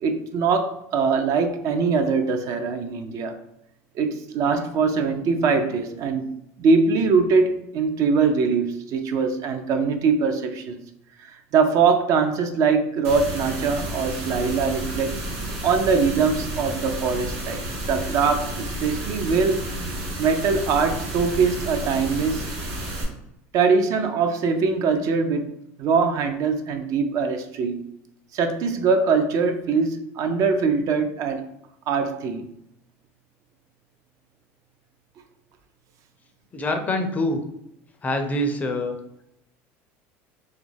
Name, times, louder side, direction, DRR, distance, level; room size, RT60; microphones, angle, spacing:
voice 1, 0.0-3.4 4.0-10.8 11.2-15.2 15.6-17.6 17.9-19.8 20.2-22.5 23.5-27.8 28.3-31.4 31.9-32.5, right 5 dB, 50° right, 0.4 m, -22 dB
sound 1, 13.0-23.0, right 1 dB, 80° right, 0.9 m, -31 dB
voice 2, 36.5-37.4 38.0-39.0, left 1 dB, 20° left, 0.4 m, -25 dB
2.4 x 2.1 x 3.1 m
supercardioid pair, 110°, 7 cm